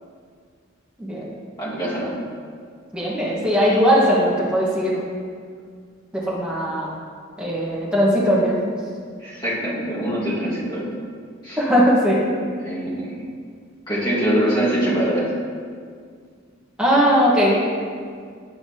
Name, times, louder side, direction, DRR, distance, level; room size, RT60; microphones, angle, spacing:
voice 1, 1.6-2.1 9.2-10.8 11.4-11.6 12.6-13.2 13.9-15.3, right 1 dB, 20° left, -9 dB, 1.8 m, -23 dB
voice 2, 2.9-5.0 6.3-6.9 7.4-8.5 11.6-12.2 16.8-17.5, equal, 5° right, -7 dB, 1.3 m, -19 dB
9.0 x 5.6 x 2.8 m, 2.1 s
head